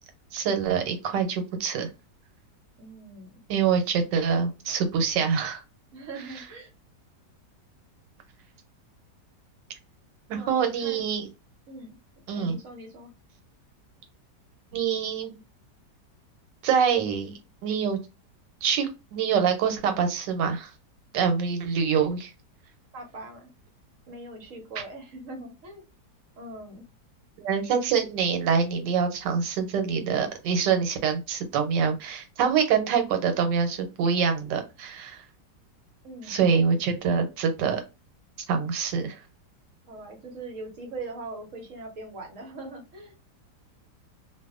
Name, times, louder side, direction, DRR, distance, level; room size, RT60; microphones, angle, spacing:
voice 1, 0.3-1.9 3.5-5.6 10.3-11.3 12.3-12.6 14.7-15.4 16.6-17.3 17.6-18.0 18.6-20.7 21.1-22.3 27.4-35.2 36.3-37.8 38.5-39.2, right 6 dB, 85° right, 6 dB, 1.3 m, -25 dB
voice 2, 2.8-3.4 5.9-6.7 10.3-11.0 11.7-12.0 12.3-13.1 22.9-23.5 24.1-25.8 26.4-26.8 36.0-36.4 39.9-43.1, right 2 dB, 60° right, 3 dB, 0.9 m, -41 dB
2.5 x 2.5 x 2.3 m, 0.27 s
omnidirectional pair, 1.9 m